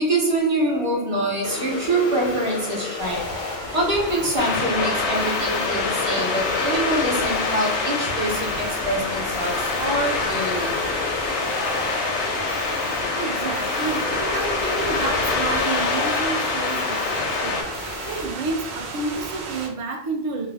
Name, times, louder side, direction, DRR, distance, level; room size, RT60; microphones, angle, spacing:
voice 1, 0.0-3.4 3.7-10.8, right 1 dB, 35° right, 0.7 m, -25 dB
sound 1, 1.4-18.2, left 4 dB, 60° left, 0.6 m, -33 dB
sound 2, 3.0-19.7, right 3 dB, 75° right, 0.9 m, -35 dB
sound 3, 4.4-17.6, left 4 dB, 90° left, 0.9 m, -26 dB
voice 2, 12.8-20.5, right 3 dB, 55° right, 0.3 m, -30 dB
2.5 x 2.1 x 3.3 m
omnidirectional pair, 1.1 m